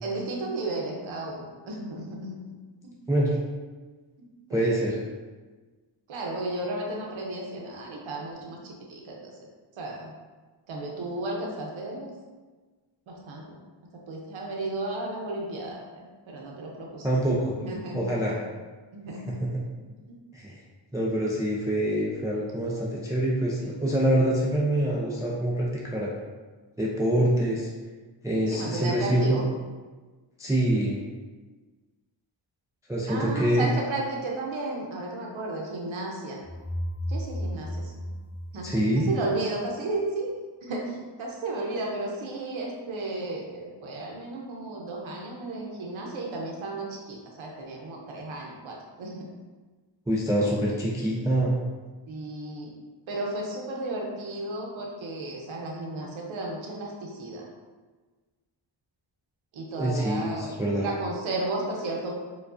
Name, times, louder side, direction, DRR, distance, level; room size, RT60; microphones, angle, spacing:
voice 1, 0.0-2.6 2.8-3.0 4.2-4.7 6.1-9.3 9.8-10.1 10.7-12.1 13.1-13.4 14.1-17.1 17.6-18.4 18.9-19.2 19.7-19.8 20.1-20.2 28.5-29.4 33.0-36.4 37.1-38.1 38.5-38.7 39.0-40.3 40.6-49.3 50.4-50.6 52.1-52.7 53.1-57.5 59.5-62.1, right 2 dB, 80° right, -1 dB, 0.7 m, -34 dB
voice 2, 4.5-5.0 17.0-17.5 17.9-18.4 19.5-19.6 20.3-20.6 20.9-26.1 26.8-27.7 28.2-29.4 30.4-31.0 32.9-33.7 38.6-39.1 50.1-51.5 59.7-60.9, right 1 dB, 10° right, -4 dB, 0.3 m, -25 dB
sound 1, 36.4-39.3, equal, 25° left, 0.8 m, -34 dB
4.5 x 2.3 x 2.4 m, 1.3 s
wide cardioid pair, 130°, 46 cm